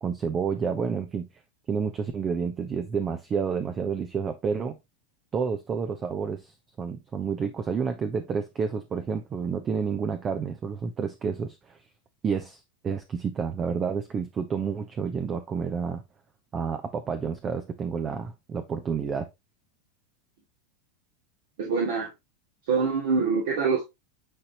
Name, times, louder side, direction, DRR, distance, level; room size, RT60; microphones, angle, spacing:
voice 1, 0.0-1.3 1.7-4.8 5.3-11.8 12.2-16.0 16.5-19.3, right 6 dB, 30° right, 0.9 m, -30 dB
voice 2, 21.6-22.1 22.7-23.9, right 5 dB, 65° right, 2.5 m, -25 dB
9.7 x 4.2 x 3.0 m
hypercardioid pair, 90°, 0 cm